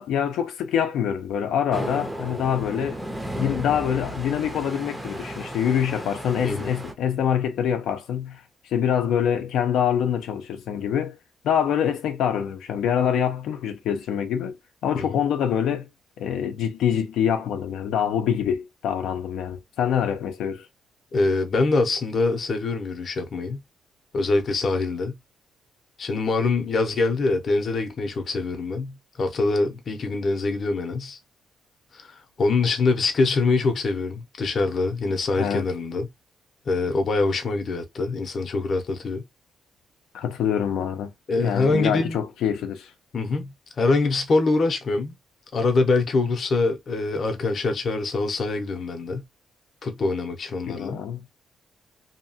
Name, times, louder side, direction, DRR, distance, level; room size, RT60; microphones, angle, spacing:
voice 1, 0.0-3.0 3.4-11.2 11.4-14.6 14.8-15.9 16.2-20.7 35.4-35.7 40.1-41.1 41.4-42.9 50.7-51.3, left 8 dB, 85° left, 0.5 m, -25 dB
sound 1, 1.7-6.9, right 1 dB, 5° right, 0.5 m, -34 dB
voice 2, 6.4-6.8 14.9-15.2 21.1-23.6 24.1-25.2 26.0-31.2 31.9-36.1 36.7-39.2 41.3-42.2 43.1-45.2 45.5-49.3 49.8-51.0, left 3 dB, 40° left, 0.6 m, -24 dB
2.8 x 2.2 x 2.7 m
cardioid pair, 155°, 0 cm